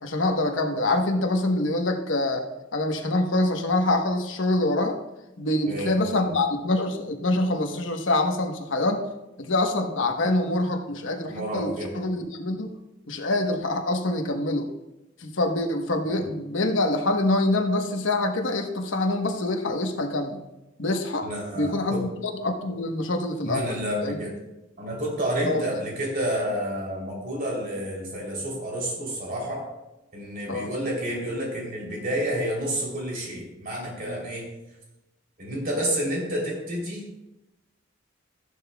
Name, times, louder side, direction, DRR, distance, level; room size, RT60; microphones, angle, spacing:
voice 1, 0.0-2.5 2.7-5.0 5.4-9.0 9.4-12.7 13.1-14.7 15.2-20.4 20.8-21.3 21.5-24.2 25.4-25.6 30.5-30.7, left 2 dB, 70° left, 4 dB, 1.1 m, -25 dB
voice 2, 5.7-6.4 11.3-12.0 16.0-16.2 21.2-22.0 23.4-24.3 24.8-29.7 30.1-34.5 35.4-37.2, equal, 50° right, -2 dB, 3.3 m, -30 dB
14.5 x 10.5 x 2.3 m, 0.99 s
head